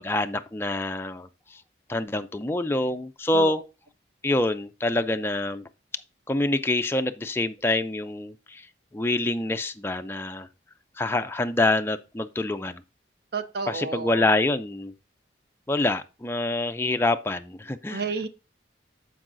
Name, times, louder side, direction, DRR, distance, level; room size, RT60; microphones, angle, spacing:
voice 1, 0.0-1.6 1.9-3.6 4.2-5.6 6.3-8.7 8.9-10.5 11.0-12.8 13.7-14.9 15.7-18.0, left 2 dB, 10° left, 0.3 m, -26 dB
voice 2, 13.3-14.2 17.9-18.3, right 4 dB, 55° right, 0.6 m, -31 dB
13.5 x 4.7 x 2.5 m
head